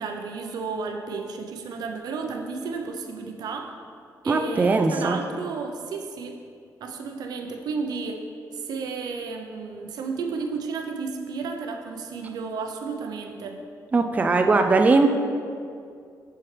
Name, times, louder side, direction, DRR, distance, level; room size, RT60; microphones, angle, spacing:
voice 1, 0.0-3.8 4.2-6.4 6.8-8.2 8.5-13.6, right 4 dB, 80° right, 4 dB, 0.6 m, -32 dB
voice 2, 4.3-5.2 13.9-15.1, right 3 dB, 20° right, 6 dB, 0.3 m, -20 dB
9.6 x 4.5 x 3.3 m, 2.3 s
cardioid pair, 120°, 7 cm